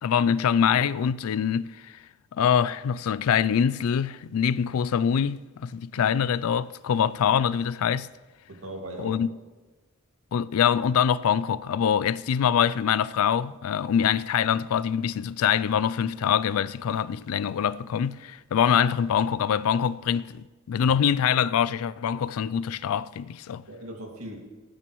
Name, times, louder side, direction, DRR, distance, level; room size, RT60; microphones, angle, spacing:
voice 1, 0.0-1.9 2.3-8.1 9.0-9.3 10.3-23.6, left 8 dB, 75° left, 0.3 m, -24 dB
voice 2, 8.5-9.2 18.6-18.8 23.7-24.4, right 1 dB, 85° right, 2.2 m, -39 dB
18.5 x 9.0 x 3.1 m
head